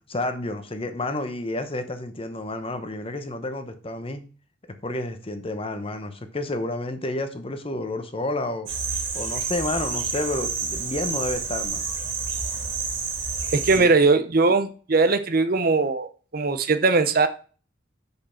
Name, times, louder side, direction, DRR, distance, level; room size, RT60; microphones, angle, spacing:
voice 1, 0.1-4.2 4.8-8.7 9.1-11.9 13.7-13.9, left 2 dB, 30° left, 0.9 m, -30 dB
sound 1, 8.7-13.8, right 5 dB, 85° right, 2.7 m, -29 dB
voice 2, 13.5-17.3, right 3 dB, 50° right, 0.8 m, -20 dB
6.7 x 5.3 x 5.8 m
head